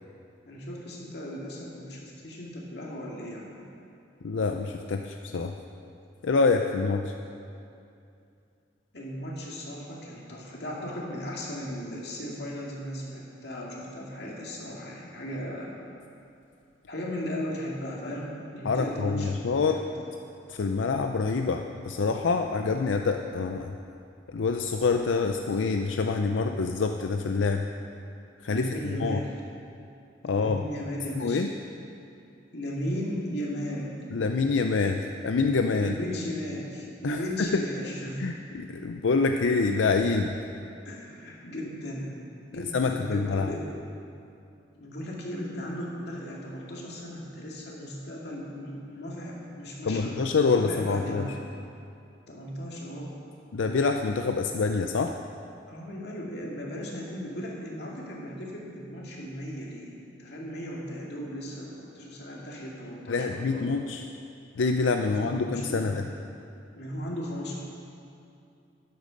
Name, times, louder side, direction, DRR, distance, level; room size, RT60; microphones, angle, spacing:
voice 1, 0.4-3.6 8.9-15.7 16.9-19.9 28.5-29.3 30.2-31.4 32.5-34.0 35.8-38.2 38.8-38.9 40.8-42.2 42.5-43.7 44.7-51.4 52.3-53.2 55.7-63.7 65.1-65.9 66.7-67.5, equal, 60° left, -3 dB, 2.3 m, -36 dB
voice 2, 4.2-5.6 6.2-7.1 18.6-19.9 20.5-23.7 24.3-27.6 28.4-29.2 30.2-30.6 31.1-31.5 34.1-35.9 37.0-37.6 38.2-40.4 42.7-43.5 49.8-51.4 53.5-55.1 63.1-64.0 64.5-66.0, left 4 dB, 90° left, 5 dB, 0.5 m, -26 dB
12.5 x 10.5 x 5.2 m, 2.6 s
head